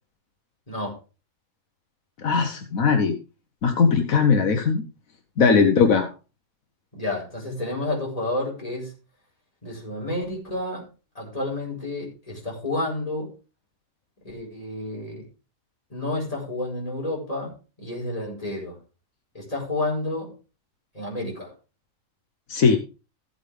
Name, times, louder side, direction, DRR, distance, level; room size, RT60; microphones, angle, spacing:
voice 1, 2.2-3.2 3.6-4.8 5.4-6.1 22.5-22.8, left 5 dB, 75° left, 6 dB, 1.5 m, -19 dB
voice 2, 6.9-8.9 9.6-10.8 11.1-13.3 14.2-15.2 15.9-17.5 17.8-18.8 19.3-20.3 20.9-21.5, left 2 dB, 25° left, -2 dB, 5.1 m, -30 dB
15.0 x 8.0 x 3.5 m, 0.33 s
omnidirectional pair, 1.4 m